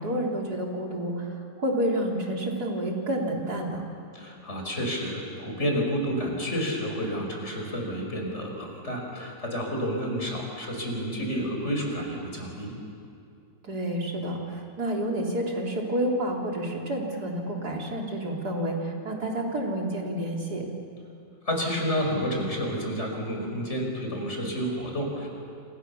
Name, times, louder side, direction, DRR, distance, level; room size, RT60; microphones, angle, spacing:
voice 1, 0.0-3.8 13.6-20.6, right 1 dB, 60° right, -1 dB, 4.2 m, -29 dB
voice 2, 4.1-12.7 21.5-25.3, equal, 40° left, 1 dB, 5.7 m, -30 dB
28.5 x 28.0 x 7.1 m, 2.5 s
omnidirectional pair, 1.9 m